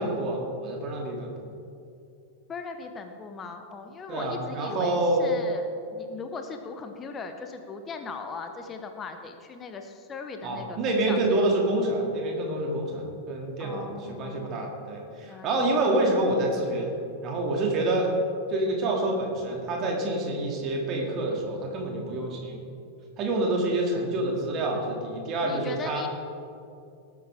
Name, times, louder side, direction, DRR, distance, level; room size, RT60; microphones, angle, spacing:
voice 1, 0.0-1.3 4.1-5.2 10.4-16.9 17.2-18.1 18.5-22.6 23.2-26.0, right 1 dB, 35° right, 0 dB, 2.7 m, -27 dB
voice 2, 2.5-11.6 13.6-14.7 15.3-15.5 25.4-26.1, left 4 dB, 25° left, 6 dB, 1.0 m, -39 dB
19.0 x 8.6 x 3.7 m, 2.5 s
figure-of-eight pair, 90°, 0 cm